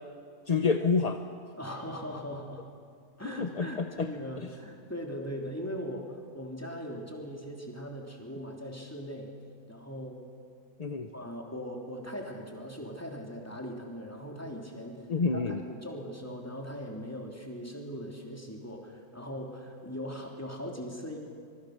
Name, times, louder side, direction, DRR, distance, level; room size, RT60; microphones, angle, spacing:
voice 1, 0.5-1.2 3.2-4.1 10.8-11.1 15.1-15.6, left 4 dB, 35° left, 6 dB, 0.7 m, -28 dB
voice 2, 1.6-2.6 3.2-9.3 9.7-10.2 11.1-21.2, equal, 10° left, 0 dB, 3.2 m, -40 dB
25.5 x 23.0 x 6.7 m, 2.2 s
omnidirectional pair, 1.6 m